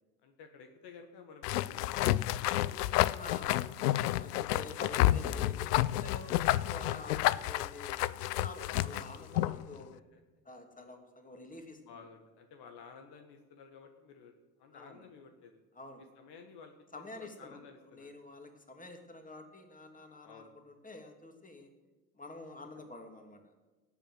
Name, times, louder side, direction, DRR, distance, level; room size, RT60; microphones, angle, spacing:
voice 1, 0.2-3.0 4.4-4.8 8.8-9.2 9.9-10.2 11.8-14.3 14.6-15.6 16.2-18.1 20.2-20.5 22.6-22.9, left 5 dB, 55° left, 5 dB, 1.7 m, -54 dB
sound 1, 1.4-9.6, left 15 dB, 80° left, 0.5 m, -30 dB
voice 2, 3.1-9.9 10.4-12.0 14.7-15.1 15.7-16.0 16.9-21.7 22.1-23.4, left 2 dB, 15° left, 5 dB, 2.8 m, -48 dB
18.0 x 7.3 x 7.8 m, 1.2 s
hypercardioid pair, 60°, 46 cm